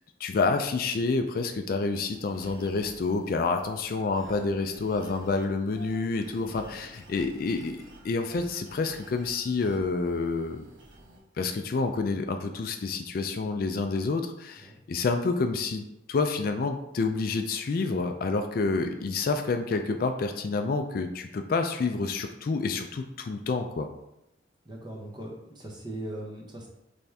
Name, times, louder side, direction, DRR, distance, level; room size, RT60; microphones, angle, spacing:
voice 1, 0.2-10.6 11.4-23.9, left 3 dB, 50° left, 6 dB, 0.3 m, -28 dB
sound 1, 2.1-11.2, right 1 dB, 85° right, 1.1 m, -50 dB
voice 2, 24.6-26.7, right 1 dB, 25° right, -1 dB, 0.8 m, -39 dB
4.1 x 3.4 x 3.4 m, 0.85 s
head